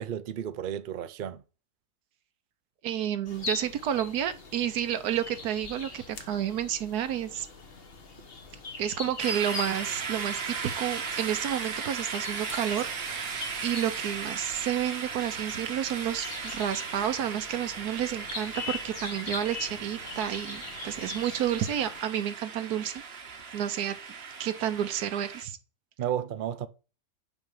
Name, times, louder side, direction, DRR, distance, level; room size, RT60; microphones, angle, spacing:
voice 1, 0.0-1.4 26.0-26.7, right 10 dB, 65° right, 0.5 m, -33 dB
voice 2, 2.8-7.5 8.8-23.0 23.5-24.0 24.4-25.6, right 10 dB, 85° right, 1.4 m, -30 dB
sound 1, 3.2-22.0, left 4 dB, 40° left, 1.3 m, -42 dB
sound 2, 9.2-25.4, right 6 dB, 45° right, 1.0 m, -37 dB
5.9 x 5.4 x 6.9 m
omnidirectional pair, 1.6 m